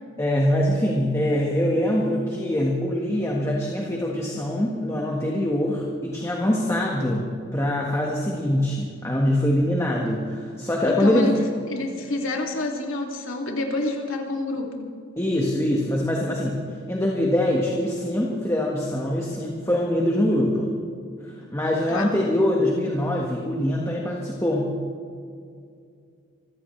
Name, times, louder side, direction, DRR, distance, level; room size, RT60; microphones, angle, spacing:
voice 1, 0.2-11.4 15.2-16.6 16.9-20.7 21.2-24.7, left 1 dB, 15° left, -2 dB, 1.5 m, -23 dB
voice 2, 11.0-11.3 11.7-14.9 21.9-22.1, left 2 dB, 75° left, 1 dB, 2.6 m, -28 dB
25.5 x 15.5 x 3.3 m, 2.3 s
head